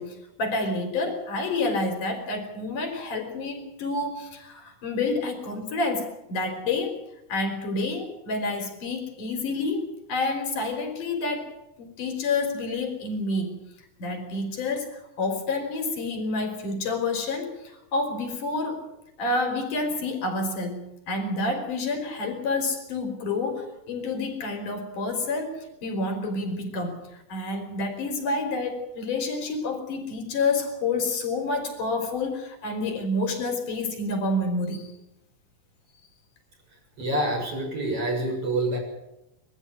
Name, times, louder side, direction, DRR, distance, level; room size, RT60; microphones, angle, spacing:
voice 1, 0.0-7.0 7.3-9.8 10.1-11.5 11.8-13.6 14.0-17.5 17.9-18.8 19.2-34.9, left 3 dB, 80° left, 4 dB, 5.3 m, -29 dB
voice 2, 37.0-38.8, right 1 dB, 45° right, 0 dB, 8.0 m, -27 dB
22.5 x 14.5 x 9.2 m, 0.89 s
omnidirectional pair, 3.6 m